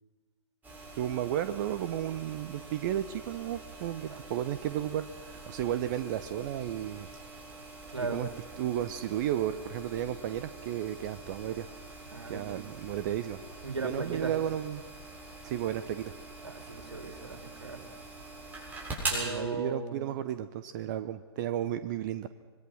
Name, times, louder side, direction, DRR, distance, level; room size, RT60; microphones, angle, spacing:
sound 1, 0.6-19.3, right 2 dB, 10° right, 7.4 m, -44 dB
voice 1, 1.0-7.1 8.1-8.3 8.6-11.7 12.3-13.4 13.8-14.8 15.4-16.1 19.2-22.3, right 11 dB, 40° right, 12 dB, 0.9 m, -33 dB
voice 2, 7.9-8.2 12.1-12.7 13.6-14.3 16.4-17.8 19.1-20.0, right 3 dB, 80° right, 5 dB, 3.6 m, -37 dB
26.5 x 21.5 x 6.3 m, 1.3 s
figure-of-eight pair, 110°, 14 cm